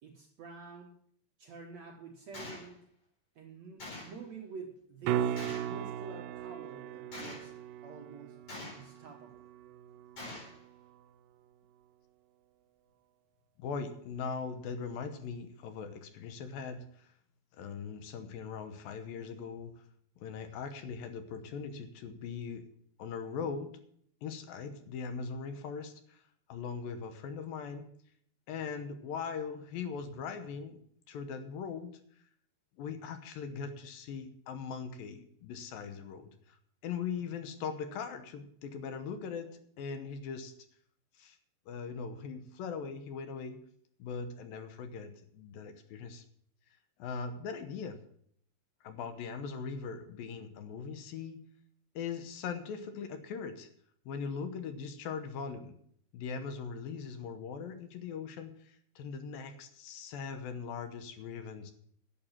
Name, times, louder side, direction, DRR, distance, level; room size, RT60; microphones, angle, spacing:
voice 1, 0.0-0.9 1.4-2.8 3.4-7.5 7.8-9.5, right 4 dB, 65° right, 2 dB, 1.9 m, -48 dB
Gunshot gunfire, 2.3-2.7 3.8-4.2 5.4-5.8 7.1-7.5 8.5-9.0 10.2-10.6, left 2 dB, 35° left, 5.3 m, -44 dB
sound 1, 5.0-11.1 15.7-15.8, right 11 dB, 90° right, 1.9 m, -38 dB
voice 2, 13.6-17.1 17.5-19.8 20.2-22.7 23.0-23.7 24.2-26.2 26.5-27.9 28.5-30.8 31.1-31.9 32.8-36.6 36.8-39.5 39.8-40.5 41.1-41.4 41.7-43.6 44.0-46.2 47.0-48.0 48.8-51.4 52.0-53.7 54.1-55.8 56.1-61.7, left 5 dB, 70° left, 8 dB, 2.6 m, -40 dB
11.0 x 8.6 x 7.4 m, 0.64 s
omnidirectional pair, 4.5 m